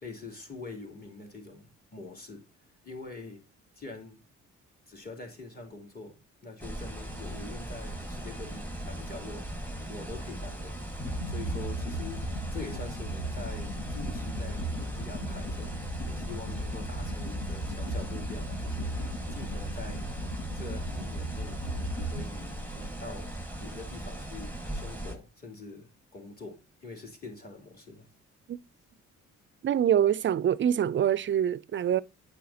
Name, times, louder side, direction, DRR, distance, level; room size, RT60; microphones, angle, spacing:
voice 1, 0.0-2.5 2.8-3.4 3.7-4.2 4.9-10.8 11.2-20.1 20.5-21.6 22.0-28.1, left 3 dB, 30° left, 3.1 m, -45 dB
sound 1, 6.6-25.1, right 1 dB, 5° left, 1.6 m, -39 dB
sound 2, 11.0-22.2, equal, 90° left, 1.7 m, -36 dB
voice 2, 29.6-32.0, right 9 dB, 40° right, 0.4 m, -25 dB
9.0 x 6.2 x 2.8 m
cardioid pair, 90°, 30 cm